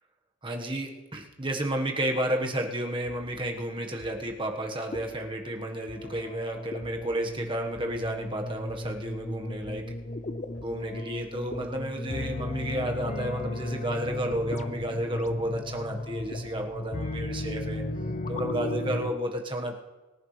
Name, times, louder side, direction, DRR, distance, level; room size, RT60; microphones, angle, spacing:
voice 1, 0.4-9.8 10.6-17.8 18.3-19.7, right 1 dB, 25° right, 2 dB, 1.4 m, -32 dB
sound 1, 4.0-6.4 6.8-9.3 9.6-13.9 14.3-16.8 17.1-17.8, equal, 15° left, 5.1 m, -53 dB
sound 2, 4.9-19.1, left 2 dB, 35° left, 0.5 m, -35 dB
24.0 x 10.5 x 3.3 m, 1.2 s
head